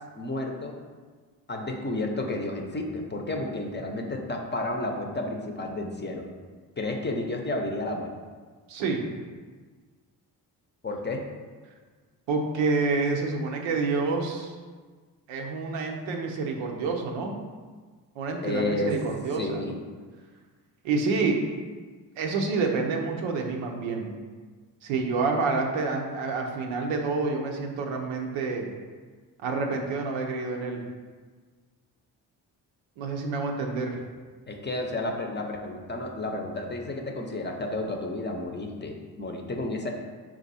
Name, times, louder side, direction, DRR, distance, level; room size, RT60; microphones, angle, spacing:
voice 1, 0.1-0.8 1.5-6.3 6.8-8.1 10.8-11.2 18.4-18.9 19.3-19.8 34.5-39.9, left 2 dB, 25° left, 2 dB, 0.6 m, -31 dB
voice 2, 8.7-9.0 12.3-14.6 15.3-17.4 18.2-19.6 20.8-21.4 22.2-24.1 24.8-28.7 29.4-30.8 33.0-34.0, right 4 dB, 85° right, 2 dB, 0.6 m, -28 dB
4.4 x 2.4 x 4.1 m, 1.5 s
supercardioid pair, 50°, 45 cm